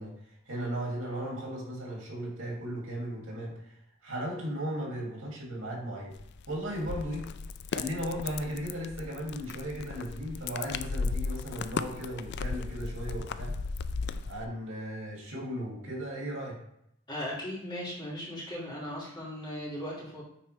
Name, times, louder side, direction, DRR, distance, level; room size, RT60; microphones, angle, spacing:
voice 1, 0.0-6.1 6.5-7.3 7.7-13.5 14.3-16.6, equal, 70° right, -3 dB, 2.6 m, -36 dB
sound 1, 6.1-14.5, left 4 dB, 55° left, 0.3 m, -36 dB
voice 2, 17.1-20.2, equal, 20° left, -6 dB, 2.8 m, -37 dB
9.0 x 4.1 x 3.4 m, 0.76 s
head